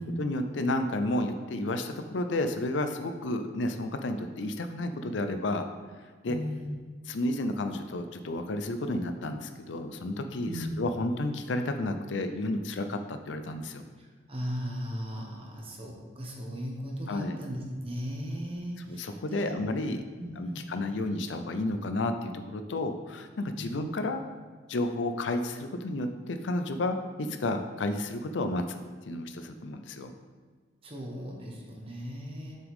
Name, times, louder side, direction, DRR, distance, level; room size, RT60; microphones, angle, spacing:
voice 1, 0.2-5.6 6.2-6.4 7.1-13.8 17.1-17.4 18.8-20.0 20.4-24.3 24.7-28.8 29.1-30.1, left 2 dB, 75° left, 7 dB, 0.5 m, -31 dB
voice 2, 6.3-6.7 10.4-10.8 14.3-19.5 20.2-20.6 23.6-23.8 30.8-32.6, equal, 30° right, -1 dB, 1.2 m, -37 dB
7.5 x 6.0 x 3.6 m, 1.5 s
head